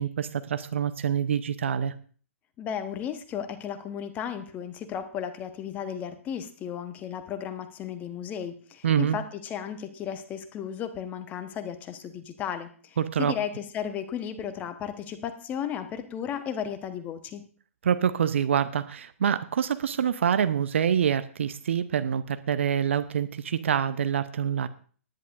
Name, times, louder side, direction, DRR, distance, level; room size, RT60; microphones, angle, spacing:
voice 1, 0.0-1.9 8.8-9.2 13.0-13.3 17.8-24.7, right 8 dB, 55° right, 13 dB, 0.8 m, -26 dB
voice 2, 2.6-17.4, left 8 dB, 20° left, 9 dB, 1.1 m, -34 dB
19.0 x 10.5 x 2.6 m, 0.43 s
figure-of-eight pair, 120°, 8 cm